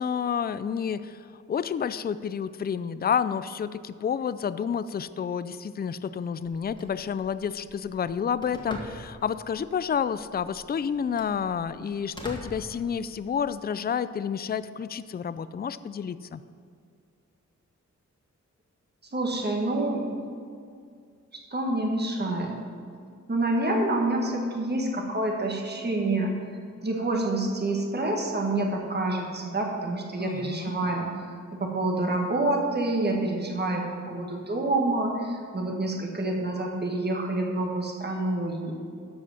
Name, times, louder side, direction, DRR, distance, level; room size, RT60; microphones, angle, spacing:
voice 1, 0.0-16.4 30.2-30.7, left 7 dB, 35° left, 14 dB, 0.4 m, -30 dB
Telephone, 6.4-13.4, equal, 15° left, 1.9 m, -45 dB
voice 2, 19.1-20.2 21.5-22.6 23.3-26.3 26.8-38.7, right 2 dB, 35° right, 0 dB, 1.6 m, -27 dB
13.0 x 5.1 x 7.0 m, 2.3 s
wide cardioid pair, 90°, 29 cm